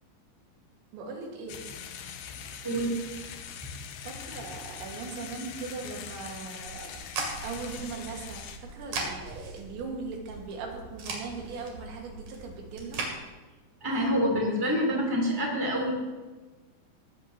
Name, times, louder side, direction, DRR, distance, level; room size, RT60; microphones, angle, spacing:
voice 1, 0.9-1.7 4.1-7.0 7.4-8.5 8.7-13.0, right 4 dB, 75° right, 0 dB, 4.3 m, -39 dB
sound 1, 1.5-8.6, left 7 dB, 75° left, 2.7 m, -42 dB
sound 2, 6.6-13.1, right 3 dB, 55° right, 3.8 m, -39 dB
voice 2, 13.8-15.9, equal, 5° right, -2 dB, 3.0 m, -26 dB
19.5 x 14.0 x 3.0 m, 1.3 s
omnidirectional pair, 5.3 m